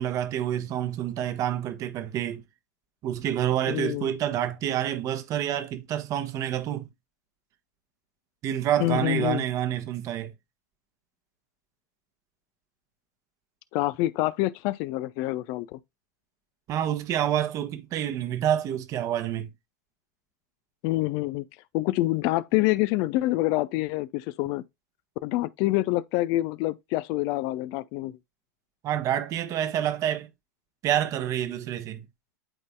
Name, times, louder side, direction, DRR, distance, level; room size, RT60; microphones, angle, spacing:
voice 1, 0.0-2.4 3.0-6.9 8.4-10.3 16.7-19.5 28.8-30.3 30.8-32.1, right 10 dB, 35° right, 1.2 m, -28 dB
voice 2, 3.7-4.1 8.8-9.5 13.7-15.8 20.8-21.5 21.7-24.6 25.2-28.1, left 18 dB, 45° left, 0.5 m, -26 dB
11.5 x 4.0 x 2.2 m
figure-of-eight pair, 95°, 9 cm